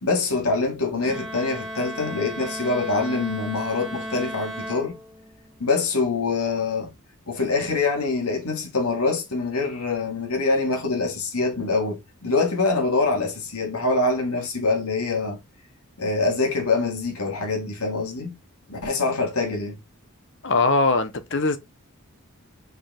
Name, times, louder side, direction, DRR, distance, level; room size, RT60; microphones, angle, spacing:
voice 1, 0.0-4.9 5.6-6.9 7.3-15.4 16.0-18.3 18.7-19.8, left 3 dB, 80° left, 2.8 m, -24 dB
Bowed string instrument, 1.0-5.5, equal, ahead, 2.1 m, -35 dB
voice 2, 20.4-21.6, left 3 dB, 55° left, 1.1 m, -21 dB
5.4 x 5.1 x 3.6 m
head